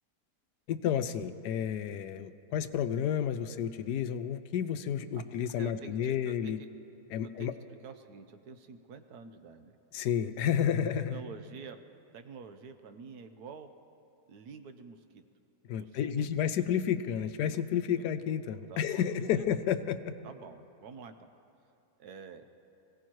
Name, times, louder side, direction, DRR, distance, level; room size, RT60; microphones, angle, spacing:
voice 1, 0.7-6.6 7.1-7.5 9.9-11.2 15.7-20.1, left 9 dB, 80° left, 11 dB, 1.2 m, -31 dB
voice 2, 5.6-6.7 7.2-7.5 7.8-9.8 11.1-11.8 12.1-13.7 14.3-15.2 15.7-16.5 18.0-18.1 18.7-19.4 20.2-21.3 22.0-22.4, right 5 dB, 70° right, 8 dB, 1.3 m, -48 dB
25.0 x 16.5 x 3.1 m, 2.6 s
omnidirectional pair, 1.8 m